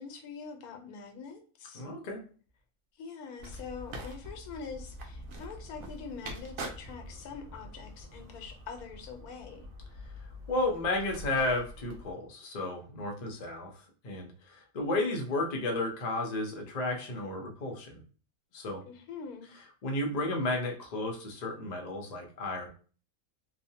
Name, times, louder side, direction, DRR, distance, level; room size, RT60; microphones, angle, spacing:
voice 1, 0.0-1.8 3.0-9.7 18.8-19.5, left 5 dB, 85° left, 5 dB, 1.1 m, -44 dB
voice 2, 1.7-2.2 10.5-13.7 14.0-18.0 18.5-18.8 19.8-22.7, left 2 dB, 50° left, 2 dB, 0.5 m, -33 dB
sound 1, 3.4-12.1, equal, 70° right, 1.0 m, -45 dB
3.1 x 2.0 x 2.7 m, 0.39 s
omnidirectional pair, 1.5 m